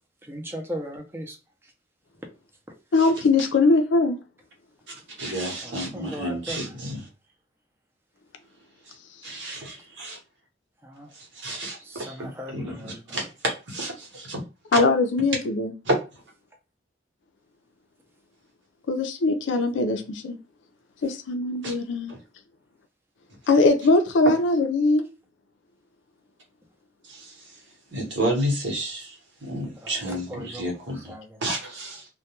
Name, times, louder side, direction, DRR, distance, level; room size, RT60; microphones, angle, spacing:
voice 1, 0.2-1.4 5.6-6.7 10.8-11.1 11.8-13.3 29.8-31.5, equal, 10° right, 0.4 m, -38 dB
voice 2, 2.9-4.2 14.7-15.7 18.9-20.4 21.0-22.1 23.5-25.1, left 3 dB, 75° left, 0.4 m, -21 dB
voice 3, 5.2-7.0 9.2-10.2 11.4-12.7 13.1-14.4 15.9-16.0 21.6-21.7 22.1-22.2 27.1-27.3 27.9-29.1 29.4-31.0 31.4-32.1, right 1 dB, 70° right, 0.9 m, -30 dB
2.2 x 2.2 x 2.8 m
head